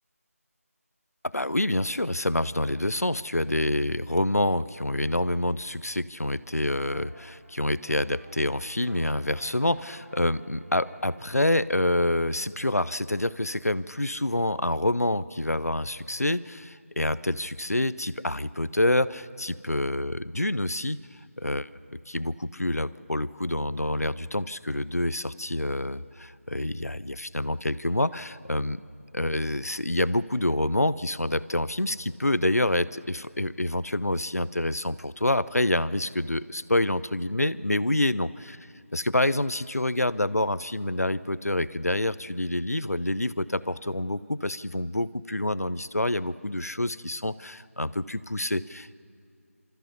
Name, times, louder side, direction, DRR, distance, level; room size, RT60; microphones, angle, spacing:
voice 1, 1.2-21.0 21.4-21.7 22.1-28.8 29.1-38.6 38.9-49.0, left 1 dB, 85° left, 17 dB, 0.7 m, -27 dB
sound 1, 6.6-11.8, right 1 dB, 75° right, 4.8 m, -52 dB
29.5 x 14.0 x 8.2 m, 2.4 s
figure-of-eight pair, 165°, 8 cm